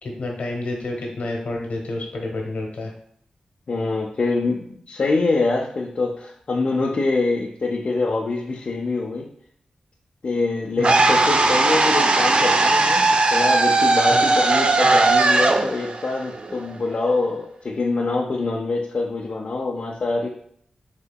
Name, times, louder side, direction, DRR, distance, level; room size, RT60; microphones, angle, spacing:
voice 1, 0.0-2.9 10.8-11.1 14.1-14.2, left 2 dB, 70° left, 0 dB, 0.8 m, -29 dB
voice 2, 3.7-9.3 10.2-20.3, left 3 dB, 55° left, -3 dB, 0.4 m, -24 dB
sound 1, 10.8-16.9, right 3 dB, 45° right, 0.3 m, -18 dB
3.6 x 2.8 x 2.2 m, 0.64 s
cardioid pair, 50°, 3 cm